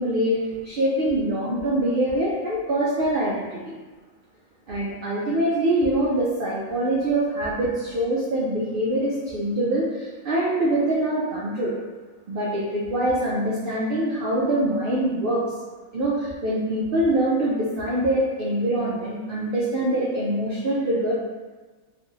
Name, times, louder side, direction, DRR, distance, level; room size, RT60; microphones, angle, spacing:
voice 1, 0.0-3.6 4.7-11.7 12.3-15.4 15.9-21.1, right 1 dB, 90° right, -5 dB, 0.4 m, -24 dB
3.4 x 2.5 x 2.5 m, 1.3 s
omnidirectional pair, 1.5 m